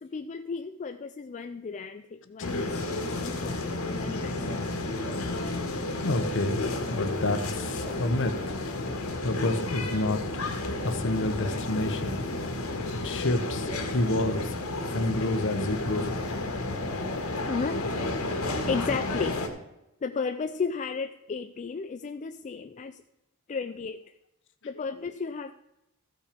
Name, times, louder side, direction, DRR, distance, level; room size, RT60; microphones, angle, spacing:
voice 1, 0.0-4.5 13.7-13.8 14.9-15.0 16.3-16.4 17.5-17.9 18.7-19.4 20.0-23.0 23.5-24.0 24.6-25.5, left 5 dB, 35° left, 8 dB, 0.4 m, -34 dB
sound 1, 2.4-19.5, left 2 dB, 75° left, 1.6 m, -31 dB
voice 2, 6.0-6.6 6.9-8.5 9.2-10.4 10.8-12.2 13.0-14.5 14.9-16.1, left 2 dB, 60° left, 9 dB, 1.0 m, -29 dB
14.5 x 5.7 x 5.1 m, 0.91 s
head